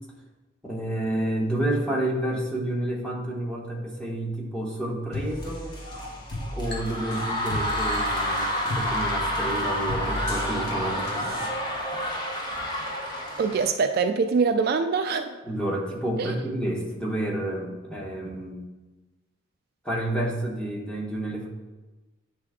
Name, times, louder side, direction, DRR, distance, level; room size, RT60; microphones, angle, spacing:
voice 1, 0.6-5.8 6.5-11.4 15.4-18.7 19.8-21.5, right 1 dB, 5° left, -3 dB, 1.1 m, -30 dB
sound 1, 5.1-11.5, left 1 dB, 55° left, 1.2 m, -35 dB
sound 2, 5.4-13.7, equal, 20° left, 0.8 m, -29 dB
voice 2, 13.4-15.4 16.2-16.3, right 5 dB, 50° right, 7 dB, 0.3 m, -24 dB
9.5 x 3.4 x 3.6 m, 1.2 s
head